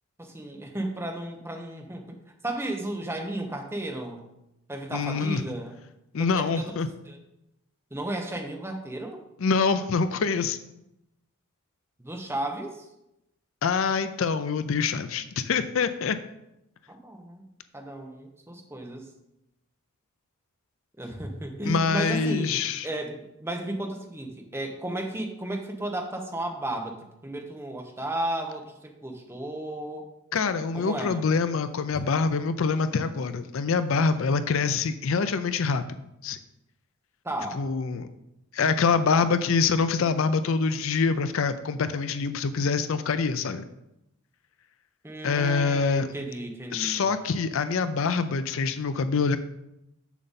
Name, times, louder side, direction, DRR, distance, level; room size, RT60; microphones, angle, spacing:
voice 1, 0.2-2.2 2.4-4.3 4.7-5.8 6.2-7.2 7.9-9.2 12.0-12.9 16.9-17.4 17.7-19.1 21.0-30.1 30.7-31.3 37.2-37.6 45.0-47.1, right 1 dB, 10° right, 3 dB, 0.9 m, -34 dB
voice 2, 4.9-5.4 6.1-6.9 9.4-10.6 13.6-16.2 21.6-22.9 30.3-36.0 36.2-36.4 37.5-38.1 38.5-43.6 45.2-46.1 46.7-49.4, left 5 dB, 65° left, 12 dB, 0.4 m, -25 dB
7.2 x 6.7 x 4.1 m, 0.87 s
head